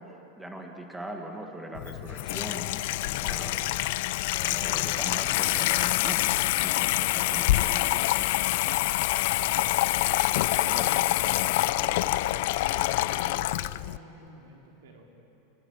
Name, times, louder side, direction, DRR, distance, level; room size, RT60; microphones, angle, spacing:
voice 1, 0.0-3.6 4.4-8.3 10.6-10.9, right 1 dB, 5° right, 2 dB, 1.8 m, -41 dB
Water tap faucet / Sink (filling or washing), 1.8-14.0, left 17 dB, 60° left, 0.5 m, -26 dB
voice 2, 9.4-9.8 10.5-15.1, right 2 dB, 80° right, 0 dB, 4.5 m, -47 dB
28.5 x 17.5 x 8.9 m, 3.0 s
supercardioid pair, 155°, 0 cm